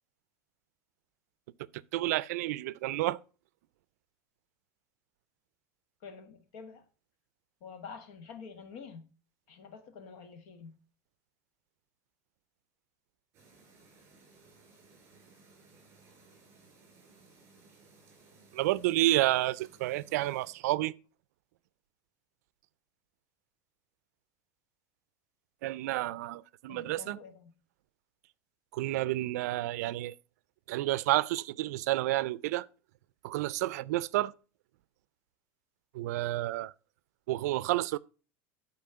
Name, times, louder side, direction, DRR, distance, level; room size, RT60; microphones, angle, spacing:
voice 1, 1.9-3.2 18.5-20.9 25.6-27.2 28.7-30.1 30.7-32.7 33.2-34.3 35.9-36.7 37.3-38.0, right 16 dB, 85° right, 0.4 m, -30 dB
voice 2, 6.0-6.8 7.6-9.1 9.5-10.7 26.7-27.5, left 5 dB, 55° left, 1.3 m, -47 dB
Chirp tweet, 13.3-20.5, right 3 dB, 30° right, 2.8 m, -60 dB
9.7 x 4.2 x 5.5 m
supercardioid pair, 170°, 8 cm